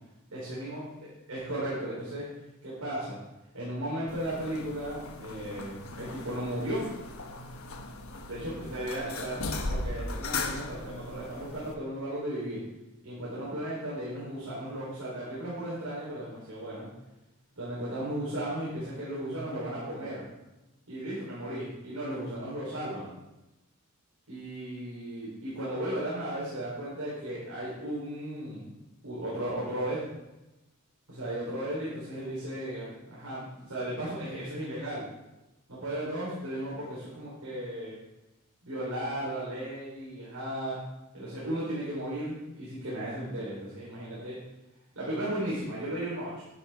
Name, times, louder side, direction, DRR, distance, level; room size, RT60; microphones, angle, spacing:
voice 1, 0.3-0.8 1.3-2.3 2.6-3.2 3.5-6.9 8.2-9.4 9.7-12.6 13.0-16.9 17.6-20.2 20.9-23.1 24.3-28.6 29.0-30.0 31.1-35.0 35.7-37.9 38.6-40.8 41.1-44.4 44.9-46.5, right 1 dB, 80° right, -8 dB, 4.2 m, -35 dB
sound 1, 4.1-11.7, left 3 dB, 70° left, 1.2 m, -38 dB
11.0 x 10.5 x 3.8 m, 0.97 s
head